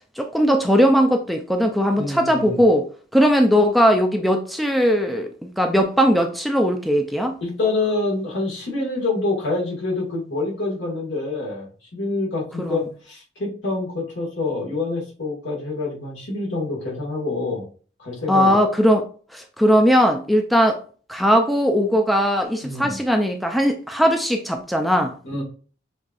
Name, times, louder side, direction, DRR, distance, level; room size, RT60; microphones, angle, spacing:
voice 1, 0.2-2.9 3.1-7.4 12.6-12.8 18.3-19.1 19.3-20.8 21.1-25.1, equal, ahead, 0.4 m, -19 dB
voice 2, 2.0-2.6 7.4-17.7 18.0-18.6 22.6-23.0 25.2-25.4, left 3 dB, 85° left, 2.1 m, -26 dB
6.2 x 3.2 x 2.5 m
head